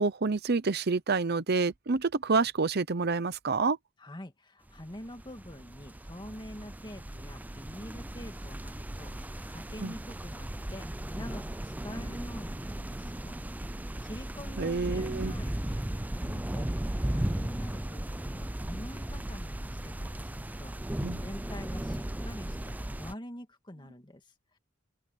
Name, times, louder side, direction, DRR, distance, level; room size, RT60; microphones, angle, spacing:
voice 1, 0.0-3.8 9.8-9.9 14.6-15.3 21.0-21.2, right 4 dB, 55° right, 0.8 m, -28 dB
voice 2, 4.0-15.9 16.1-24.6, left 1 dB, 25° left, 2.4 m, -46 dB
sound 1, 4.8-23.1, right 1 dB, 10° right, 0.5 m, -36 dB
open air
head